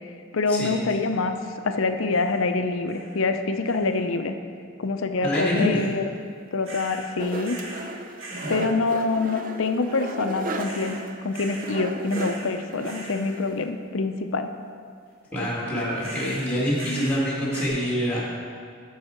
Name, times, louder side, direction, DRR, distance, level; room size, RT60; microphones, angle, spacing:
voice 1, 0.3-1.4 1.6-4.4 4.8-6.1 6.5-7.6 8.5-14.5, left 3 dB, 70° left, 8 dB, 0.6 m, -26 dB
sound 1, 2.1-2.5 2.9-3.3 3.6-4.1 6.6-7.1 7.4-7.9 8.2-8.6 10.6-11.0 11.3-11.8 12.1-12.6 12.8-13.3 16.0-17.2 17.5-17.7, right 1 dB, 65° right, 1.8 m, -40 dB
voice 2, 5.2-5.8 8.3-8.6 15.3-18.2, equal, 5° left, -6 dB, 2.0 m, -26 dB
sound 2, 7.2-13.7, right 2 dB, 40° right, 0.5 m, -35 dB
14.0 x 5.6 x 4.4 m, 2.2 s
head